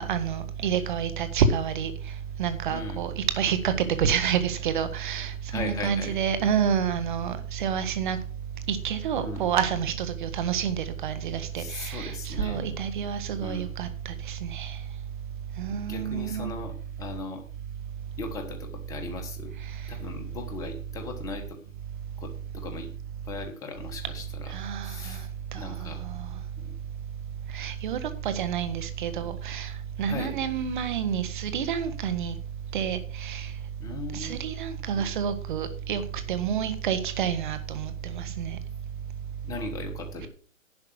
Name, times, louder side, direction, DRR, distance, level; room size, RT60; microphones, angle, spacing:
voice 1, 0.0-1.9 2.4-3.7 4.0-8.2 8.7-14.8 15.6-16.5 24.5-25.2 25.5-26.3 27.5-29.7 30.0-32.4 32.7-33.5 34.1-36.0 36.3-38.6, right 8 dB, 35° right, 10 dB, 1.6 m, -28 dB
voice 2, 2.7-3.0 5.5-6.2 9.1-9.5 11.5-12.8 13.4-13.7 15.9-17.4 18.2-19.5 19.9-21.6 22.2-22.9 23.3-24.5 24.8-26.0 26.6-26.8 30.0-30.3 33.8-34.4 34.9-35.1 39.4-40.3, left 4 dB, 10° left, 4 dB, 1.2 m, -38 dB
11.0 x 5.3 x 7.9 m, 0.44 s
hypercardioid pair, 150°, 40 cm